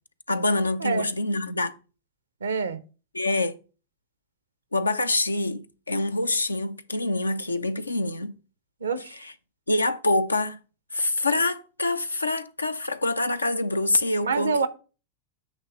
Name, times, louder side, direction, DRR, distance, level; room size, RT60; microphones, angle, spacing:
voice 1, 0.3-1.7 3.1-3.6 4.7-8.3 9.1-9.3 9.7-10.6 10.9-14.7, left 2 dB, 80° left, 0.6 m, -26 dB
voice 2, 2.4-2.8 8.8-9.1 14.2-14.7, right 5 dB, 70° right, 0.8 m, -26 dB
9.0 x 3.2 x 5.9 m
figure-of-eight pair, 90°, 0 cm